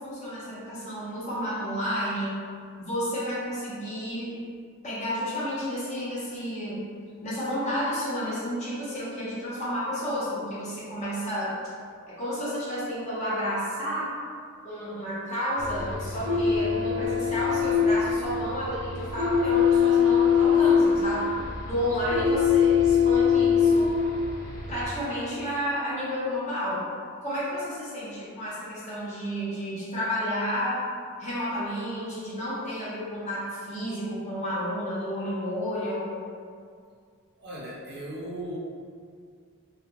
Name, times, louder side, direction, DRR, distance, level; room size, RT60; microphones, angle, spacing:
voice 1, 0.0-2.4 2.8-4.3 4.8-6.8 7.2-11.5 12.1-14.1 14.6-21.3 21.7-24.1 24.7-26.8 27.2-30.8 31.2-36.1, equal, 30° left, -9 dB, 0.7 m, -31 dB
sound 1, 15.6-24.9, left 6 dB, 80° left, 0.8 m, -23 dB
voice 2, 37.4-38.6, right 1 dB, 45° right, -6 dB, 0.5 m, -37 dB
2.5 x 2.2 x 3.0 m, 2.2 s
head